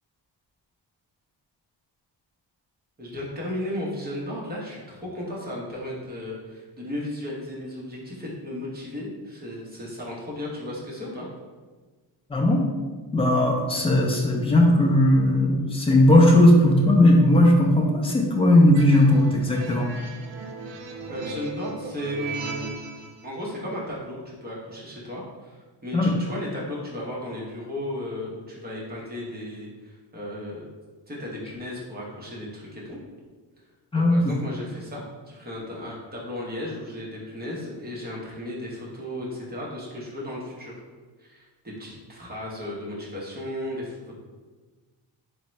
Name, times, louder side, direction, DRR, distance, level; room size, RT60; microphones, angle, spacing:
voice 1, 3.0-11.3 21.1-22.7 23.2-25.6 25.8-30.6 31.1-33.0 33.9-40.8 41.2-44.1, left 1 dB, 20° right, -4 dB, 0.7 m, -35 dB
voice 2, 12.3-12.7 13.1-19.9 25.9-26.1 33.9-34.4, left 1 dB, 15° left, -1 dB, 0.3 m, -18 dB
sound 1, 18.7-23.2, right 3 dB, 75° right, 0.6 m, -37 dB
3.5 x 2.1 x 4.2 m, 1.3 s
wide cardioid pair, 175°, 44 cm